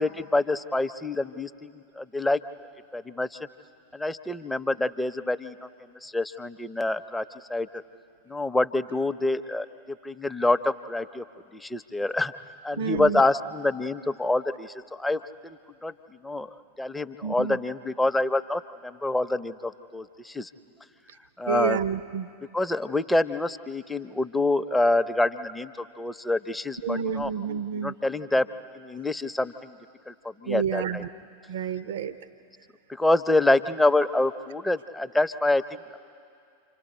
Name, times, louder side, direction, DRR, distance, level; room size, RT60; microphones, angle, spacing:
voice 1, 0.0-1.7 2.0-2.4 2.9-3.4 3.9-5.5 6.0-7.2 7.5-7.7 8.3-11.2 11.5-12.3 12.6-15.9 16.2-16.5 16.8-20.5 21.4-21.8 22.5-27.3 27.7-28.5 28.7-29.7 30.1-31.0 32.9-35.6, left 2 dB, 5° left, 10 dB, 0.7 m, -26 dB
voice 2, 12.7-13.2 17.2-17.6 21.5-22.3 26.8-28.0 30.5-31.1 31.5-32.2, right 7 dB, 60° right, 13 dB, 0.7 m, -29 dB
29.0 x 26.0 x 4.3 m, 2.3 s
figure-of-eight pair, 90°, 0 cm